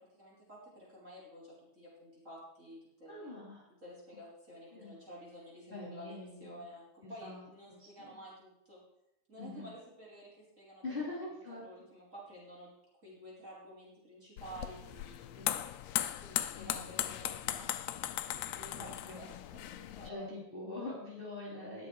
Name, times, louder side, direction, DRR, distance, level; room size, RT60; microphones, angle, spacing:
voice 1, 0.0-3.4 3.8-6.1 6.4-6.8 7.1-8.8 9.3-10.8 11.6-12.7 13.0-15.3 16.2-17.7 18.4-20.3, equal, 20° right, -6 dB, 4.3 m, -51 dB
voice 2, 3.1-3.6 4.7-4.9 5.7-6.6 7.0-8.1 9.4-9.7 10.8-11.6 15.3-15.6 16.6-16.9 19.1-19.3 20.0-21.9, left 2 dB, 15° left, -6 dB, 3.4 m, -44 dB
sound 1, 14.4-20.1, left 12 dB, 85° left, 1.5 m, -38 dB
20.0 x 6.9 x 4.8 m, 0.81 s
omnidirectional pair, 3.7 m